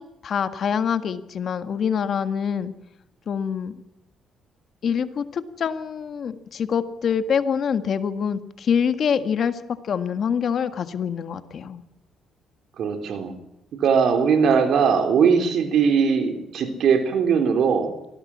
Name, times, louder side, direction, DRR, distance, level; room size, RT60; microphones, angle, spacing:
voice 1, 0.0-2.7 3.3-3.7 4.8-11.8, left 7 dB, 60° left, 10 dB, 1.6 m, -25 dB
voice 2, 12.8-13.4 13.7-18.1, right 6 dB, 70° right, 6 dB, 3.7 m, -20 dB
24.0 x 17.0 x 7.4 m, 0.84 s
cardioid pair, 90°, 0 cm